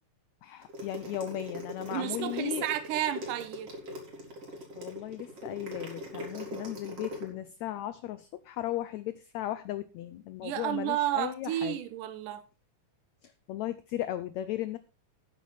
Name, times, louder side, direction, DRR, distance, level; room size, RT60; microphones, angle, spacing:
voice 1, 0.4-2.7 4.7-11.8 13.2-14.8, left 13 dB, 75° left, 1.7 m, -36 dB
sound 1, 0.6-7.3, equal, 45° right, 4.3 m, -40 dB
voice 2, 1.9-3.7 10.4-12.4, right 12 dB, 75° right, 2.5 m, -31 dB
11.5 x 9.6 x 4.1 m
omnidirectional pair, 3.8 m